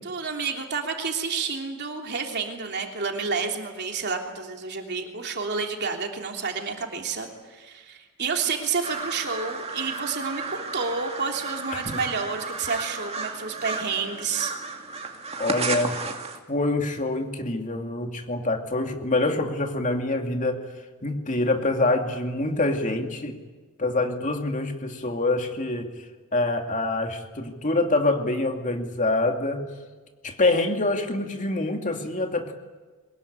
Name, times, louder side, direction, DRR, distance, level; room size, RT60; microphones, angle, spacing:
voice 1, 0.0-14.5, right 5 dB, 50° right, 2 dB, 3.2 m, -30 dB
sound 1, 8.8-16.4, right 4 dB, 30° right, 2.4 m, -33 dB
voice 2, 15.4-16.0 16.5-20.7 21.0-23.3 23.8-25.9 26.3-29.6 30.2-32.5, left 2 dB, 35° left, 4 dB, 2.6 m, -25 dB
23.5 x 21.0 x 9.6 m, 1.4 s
head